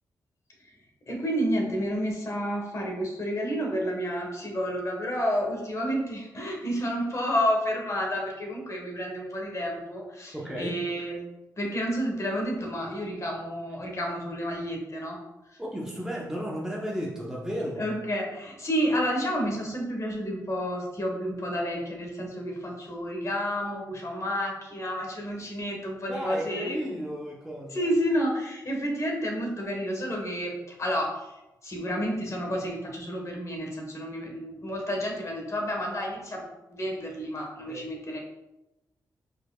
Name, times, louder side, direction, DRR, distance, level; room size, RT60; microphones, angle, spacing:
voice 1, 1.1-11.2 11.6-15.2 17.8-26.8 27.7-31.3 31.6-36.4 36.7-38.2, equal, 45° left, 0 dB, 1.5 m, -30 dB
voice 2, 10.3-10.8 15.6-17.8 26.1-27.8 37.7-37.9, equal, 5° right, -4 dB, 0.9 m, -33 dB
4.7 x 4.5 x 2.4 m, 0.96 s
cardioid pair, 55°, 7 cm